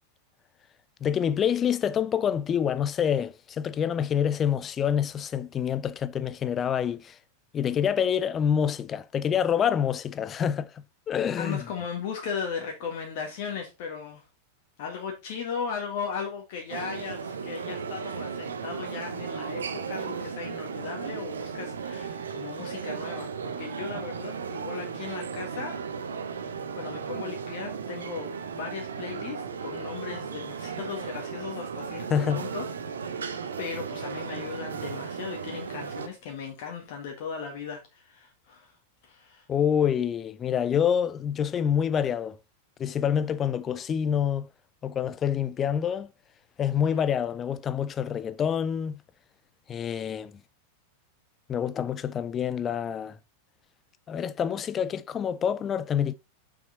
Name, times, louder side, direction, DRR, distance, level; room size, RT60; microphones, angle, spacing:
voice 1, 1.0-7.2 7.5-11.6 32.1-32.4 39.5-42.4 42.8-44.5 44.8-46.1 46.6-49.0 49.7-50.3 51.5-53.2 54.1-56.1, left 8 dB, 25° left, 0.5 m, -27 dB
voice 2, 11.4-14.2 14.8-25.8 26.3-32.7 33.0-38.8 39.0-39.5 46.8-47.0, left 6 dB, 50° left, 1.7 m, -37 dB
sound 1, 16.7-36.1, right 6 dB, 70° right, 0.8 m, -35 dB
6.1 x 6.1 x 4.1 m
figure-of-eight pair, 90°, 0 cm